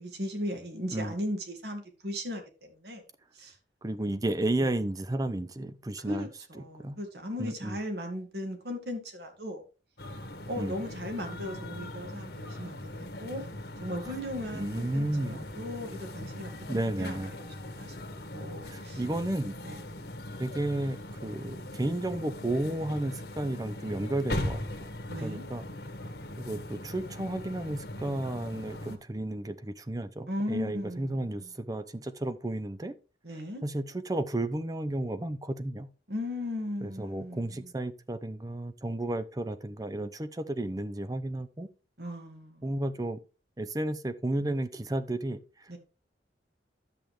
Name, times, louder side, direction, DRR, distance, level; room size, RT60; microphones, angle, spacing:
voice 1, 0.0-3.0 3.3-3.6 4.6-4.7 6.0-9.6 10.5-13.4 13.8-17.5 17.7-18.0 18.3-19.0 19.6-19.8 25.1-25.5 30.3-31.5 33.2-33.6 36.1-37.7 42.0-42.7 45.7-45.8, left 1 dB, 60° right, 2.1 m, -37 dB
voice 2, 3.8-6.3 6.8-7.0 7.4-7.8 10.6-10.7 14.5-15.5 16.7-17.3 18.7-19.6 20.4-24.9 25.2-25.6 26.4-33.0 33.6-35.9 36.8-41.7 42.6-43.2 43.6-45.7, right 1 dB, 20° right, 0.6 m, -33 dB
sound 1, 10.0-29.0, left 1 dB, 60° left, 1.4 m, -40 dB
10.5 x 7.6 x 3.3 m
head